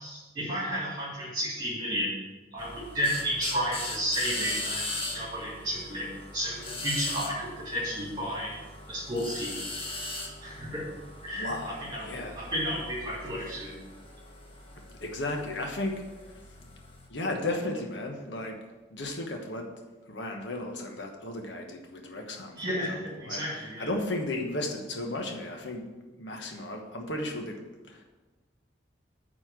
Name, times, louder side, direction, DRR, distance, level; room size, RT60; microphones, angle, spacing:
voice 1, 0.0-2.1 2.5-8.6 8.9-9.5 10.4-10.8 11.2-12.1 12.3-13.8 22.6-23.9, equal, 25° right, -9 dB, 3.1 m, -32 dB
sound 1, 2.6-17.1, left 2 dB, 30° left, 1.3 m, -39 dB
voice 2, 11.3-12.4 13.2-13.5 14.8-16.7 17.1-18.6 18.9-19.7 20.1-25.8 26.2-28.0, left 2 dB, 90° left, 2 dB, 1.2 m, -35 dB
9.2 x 4.3 x 7.4 m, 1.2 s
head